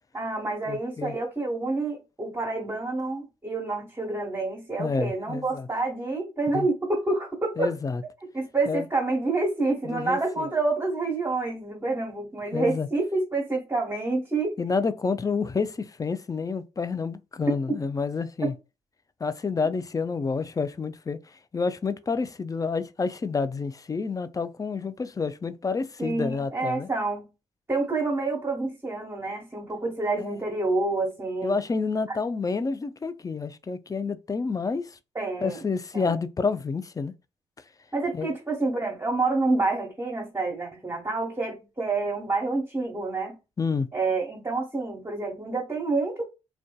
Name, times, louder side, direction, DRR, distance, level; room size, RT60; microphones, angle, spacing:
voice 1, 0.1-7.7 8.3-14.6 17.7-17.8 18.4-18.5 26.0-27.2 27.7-31.6 32.1-32.2 35.1-35.7 35.9-36.2 37.9-43.4 43.9-46.3, right 3 dB, 20° right, 1.1 m, -28 dB
voice 2, 0.7-1.1 4.8-5.7 6.5-6.7 7.6-8.0 8.7-8.8 9.8-10.5 12.5-12.9 14.6-18.5 19.2-21.2 21.5-26.9 30.2-30.4 31.4-34.8 35.4-37.1 38.1-38.3 43.6-43.9, left 4 dB, 25° left, 0.4 m, -29 dB
2.5 x 2.2 x 2.3 m
hypercardioid pair, 40°, 15 cm